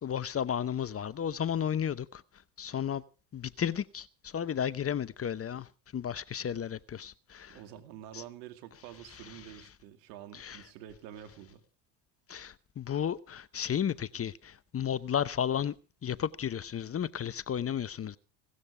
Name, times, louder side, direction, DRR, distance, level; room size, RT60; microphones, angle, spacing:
voice 1, 0.0-2.2 2.6-3.0 3.3-7.6 8.1-8.2 10.3-10.6 12.3-15.7 16.0-18.2, left 9 dB, 30° left, 0.8 m, -33 dB
voice 2, 7.5-11.6, right 11 dB, 80° right, 2.7 m, -48 dB
17.5 x 13.0 x 4.9 m
hypercardioid pair, 80°, 49 cm